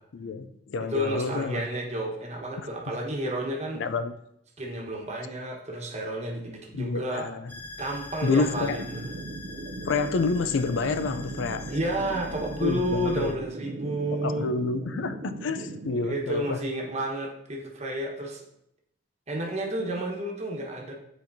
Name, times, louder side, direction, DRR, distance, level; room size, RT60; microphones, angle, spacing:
voice 1, 0.1-1.7 3.7-4.1 6.7-7.5 8.2-8.8 9.8-11.7 12.6-13.3 14.1-16.6, left 4 dB, 75° left, 10 dB, 0.4 m, -28 dB
voice 2, 0.8-3.8 4.6-7.3 7.8-9.1 11.7-14.5 16.0-18.4 19.3-20.9, right 1 dB, 35° right, -1 dB, 1.2 m, -31 dB
sound 1, 7.5-13.3, left 1 dB, 10° left, 0.5 m, -43 dB
sound 2, 8.3-16.1, right 2 dB, 55° right, 0.4 m, -39 dB
9.7 x 4.4 x 2.6 m, 0.76 s
head